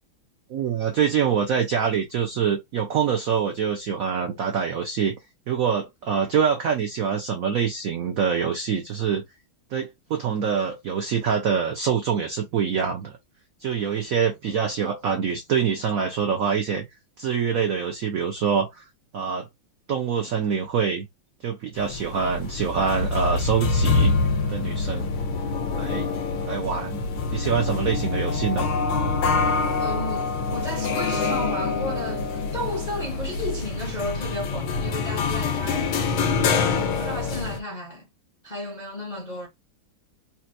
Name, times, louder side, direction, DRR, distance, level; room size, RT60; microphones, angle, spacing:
voice 1, 0.5-5.2 5.5-9.2 9.7-13.1 13.6-16.9 17.2-18.8 19.1-19.5 19.9-21.1 21.4-24.1 24.5-25.1 25.7-26.1 26.5-27.0 27.3-28.7, right 7 dB, 75° right, 0.7 m, -25 dB
sound 1, 21.8-37.6, left 4 dB, 85° left, 1.6 m, -25 dB
voice 2, 29.8-38.1 38.4-39.5, left 1 dB, 40° left, 0.6 m, -33 dB
4.2 x 2.1 x 2.6 m
omnidirectional pair, 2.2 m